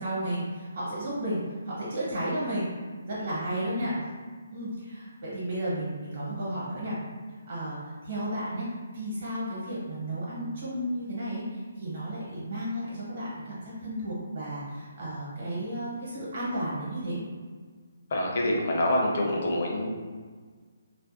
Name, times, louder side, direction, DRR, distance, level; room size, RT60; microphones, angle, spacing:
voice 1, 0.0-2.7 3.0-3.9 4.5-7.0 7.5-17.2, right 1 dB, 55° right, -8 dB, 1.0 m, -33 dB
voice 2, 18.1-19.9, left 1 dB, 50° left, -1 dB, 0.5 m, -26 dB
2.4 x 2.2 x 2.5 m, 1.5 s
hypercardioid pair, 160°, 0 cm